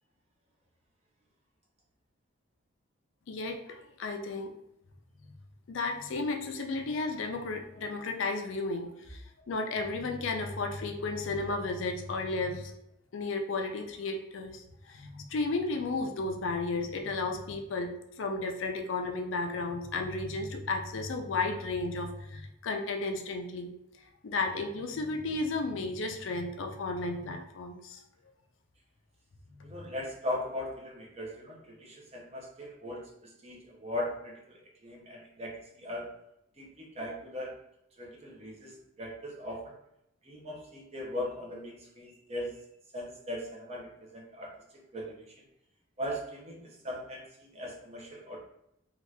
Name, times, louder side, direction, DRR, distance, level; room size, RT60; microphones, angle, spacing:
voice 1, 3.3-4.5 5.7-9.2 9.5-12.7 13.1-17.9 18.2-23.7 24.2-28.0 29.5-29.7, left 3 dB, 65° left, 4 dB, 0.4 m, -33 dB
voice 2, 29.6-36.1 36.6-37.5 38.0-39.7 40.2-42.6 42.9-44.5 44.9-45.5 46.0-48.4, left 1 dB, 30° right, -1 dB, 0.7 m, -39 dB
2.7 x 2.4 x 3.2 m, 0.81 s
head